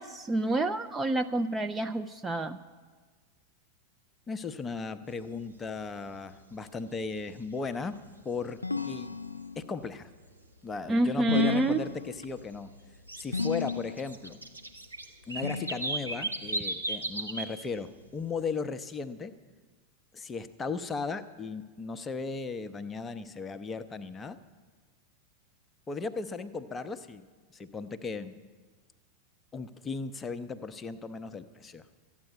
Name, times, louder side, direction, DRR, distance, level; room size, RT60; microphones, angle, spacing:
voice 1, 0.0-2.6 10.9-11.8, right 2 dB, 15° right, 7 dB, 0.5 m, -28 dB
voice 2, 4.3-8.0 8.2-9.2 9.6-10.1 10.6-12.7 13.2-14.4 15.3-19.3 20.1-24.4 25.9-27.3 27.5-28.4 29.5-31.9, left 4 dB, 15° left, 10 dB, 0.7 m, -36 dB
sound 1, 5.1-5.2 5.6-5.8 6.1-6.6 7.0-8.2 8.6-8.7 9.2-9.3 9.9-10.0 10.3-10.4 10.8-11.6 11.9-17.5 17.8-18.2, right 2 dB, 85° right, 1.2 m, -36 dB
sound 2, 8.6-9.8 11.3-12.4 13.3-14.2 15.4-16.4, left 4 dB, 85° left, 0.5 m, -34 dB
13.0 x 8.9 x 9.6 m, 1.4 s
figure-of-eight pair, 90°, 0 cm